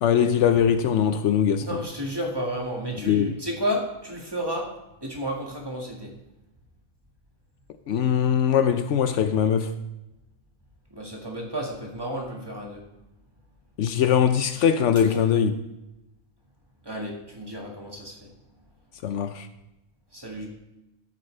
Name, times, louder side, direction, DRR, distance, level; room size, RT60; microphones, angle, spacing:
voice 1, 0.0-1.8 3.0-3.4 7.9-9.7 13.8-15.6 19.0-19.5, left 8 dB, 70° left, 0.9 m, -21 dB
voice 2, 1.6-4.7 5.0-6.2 10.9-12.8 15.1-15.2 16.8-18.3 20.1-20.5, equal, 20° right, 1.8 m, -32 dB
12.5 x 8.4 x 3.3 m
omnidirectional pair, 1.3 m